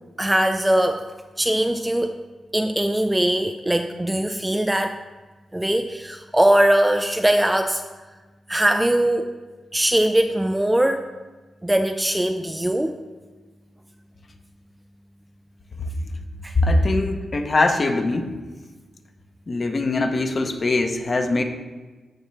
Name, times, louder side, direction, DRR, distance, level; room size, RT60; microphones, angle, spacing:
voice 1, 0.2-1.1 1.4-2.2 2.5-5.0 5.5-7.8 8.5-9.3 9.7-11.1 11.6-12.9 16.4-16.5, right 1 dB, 5° right, 6 dB, 0.3 m, -21 dB
voice 2, 16.6-18.3 19.5-21.4, left 2 dB, 30° left, 5 dB, 0.8 m, -21 dB
14.0 x 5.7 x 3.3 m, 1.3 s
wide cardioid pair, 170°, 0 cm